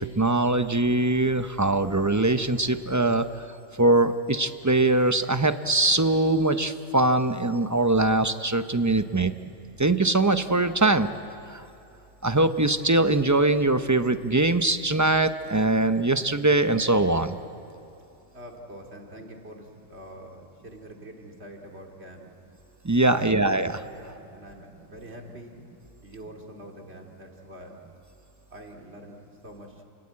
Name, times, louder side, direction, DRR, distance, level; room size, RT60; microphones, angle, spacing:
voice 1, 0.2-3.5 3.8-9.3 9.8-11.1 11.5-11.6 12.2-17.4 22.8-23.8, right 2 dB, 20° right, 9 dB, 0.6 m, -22 dB
voice 2, 18.3-22.3 23.1-23.5 23.9-25.6 26.0-27.8 28.5-29.2 29.4-29.8, right 1 dB, 55° right, 1 dB, 2.8 m, -45 dB
29.0 x 20.5 x 8.7 m, 2.8 s
omnidirectional pair, 1.3 m